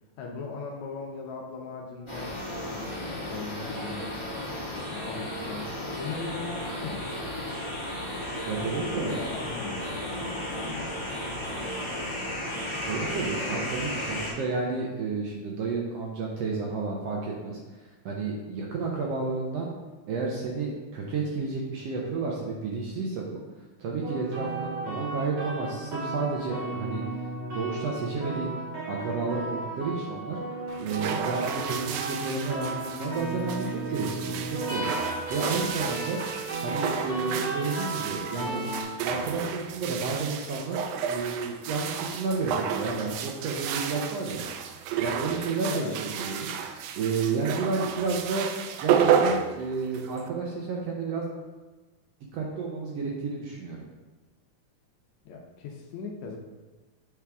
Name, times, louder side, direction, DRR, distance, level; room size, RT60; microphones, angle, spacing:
voice 1, 0.2-2.3 2.6-4.2 4.8-5.7 6.0-7.1 8.8-10.9 45.7-46.0 55.3-56.4, left 4 dB, 75° left, 1 dB, 1.9 m, -39 dB
sound 1, 2.1-14.3, left 1 dB, 20° left, 0.7 m, -34 dB
voice 2, 8.5-9.2 12.8-17.6 18.0-19.7 20.1-23.4 23.8-27.0 27.5-28.6 28.9-30.4 30.8-36.4 36.6-38.6 39.0-44.4 45.0-46.6 47.0-48.5 48.8-51.3 52.3-53.8, right 4 dB, 70° right, -2 dB, 1.6 m, -31 dB
sound 2, 24.0-38.8, right 2 dB, 50° right, 3.0 m, -34 dB
sound 3, 30.7-50.3, right 7 dB, 90° right, 1.5 m, -32 dB
8.4 x 4.7 x 3.5 m, 1.2 s
omnidirectional pair, 3.6 m